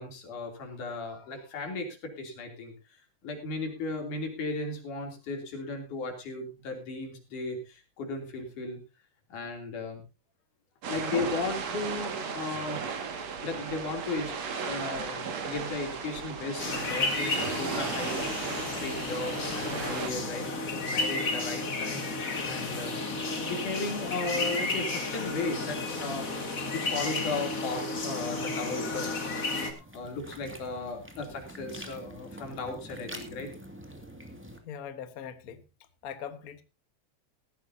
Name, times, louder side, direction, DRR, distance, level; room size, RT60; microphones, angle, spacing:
voice 1, 0.0-2.7 3.2-8.8 9.3-10.0 10.9-13.1 13.4-14.3 14.6-20.5 20.8-22.2 22.4-23.0 23.3-29.3 29.9-33.5 33.9-34.0, left 3 dB, 85° left, 3 dB, 4.5 m, -36 dB
sound 1, 10.8-20.1, right 5 dB, 60° right, 3.0 m, -35 dB
sound 2, 16.6-29.7, left 3 dB, 30° left, 2.1 m, -32 dB
sound 3, 29.2-34.6, equal, 5° right, 1.5 m, -46 dB
voice 2, 34.6-35.6 36.0-36.6, left 8 dB, 55° left, 10 dB, 0.9 m, -41 dB
17.5 x 14.5 x 2.7 m, 0.28 s
omnidirectional pair, 3.5 m